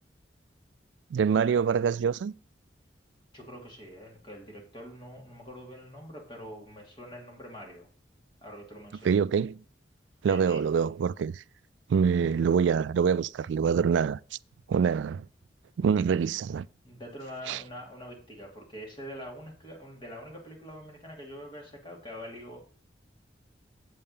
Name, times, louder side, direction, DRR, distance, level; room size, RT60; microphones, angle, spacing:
voice 1, 1.1-2.3 9.0-9.6 10.2-11.4 11.9-14.2 14.7-15.2 15.8-16.7 17.5-17.6, right 6 dB, 90° right, 0.3 m, -25 dB
voice 2, 3.3-7.9 8.4-9.1 10.3-10.6 11.9-12.2 16.8-22.6, equal, 25° left, 2.9 m, -44 dB
7.9 x 5.5 x 6.7 m
head